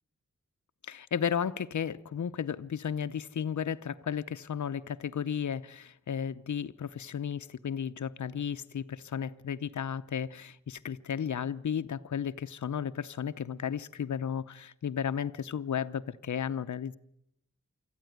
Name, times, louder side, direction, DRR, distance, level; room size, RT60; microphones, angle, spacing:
voice 1, 0.8-16.9, left 8 dB, 80° left, 0.8 m, -34 dB
25.5 x 14.5 x 9.3 m
wide cardioid pair, 110°, 29 cm